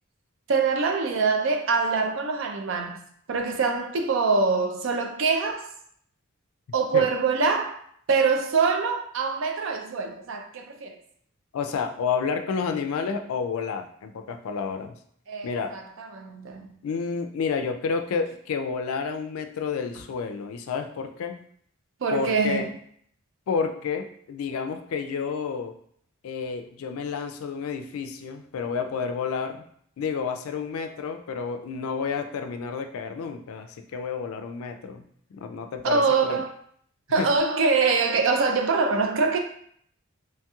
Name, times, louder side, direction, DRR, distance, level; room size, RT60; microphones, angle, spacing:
voice 1, 0.5-3.0 3.3-5.7 6.7-7.8 8.1-11.0 15.3-16.7 22.0-22.7 35.8-36.5 37.1-39.4, right 4 dB, 60° right, 0.4 m, -24 dB
voice 2, 11.5-14.9 15.4-15.7 16.8-21.4 22.1-22.7 23.5-25.7 26.2-29.6 30.0-35.1 35.3-36.4 37.2-37.3, left 5 dB, 80° left, 0.3 m, -30 dB
3.1 x 2.9 x 2.3 m
head